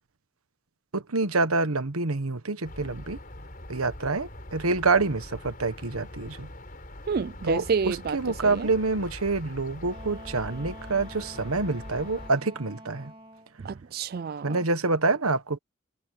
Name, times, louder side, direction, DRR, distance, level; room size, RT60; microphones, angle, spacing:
voice 1, 0.9-3.2 3.7-6.5 7.4-13.1 14.4-15.6, right 3 dB, 90° right, 1.4 m, -27 dB
sound 1, 2.6-12.3, left 1 dB, 40° left, 5.0 m, -43 dB
voice 2, 7.1-8.2 8.5-8.7 13.6-14.6, right 5 dB, 45° right, 0.4 m, -29 dB
Wind instrument woodwind instrument, 9.8-13.5, right 1 dB, 25° right, 2.3 m, -46 dB
head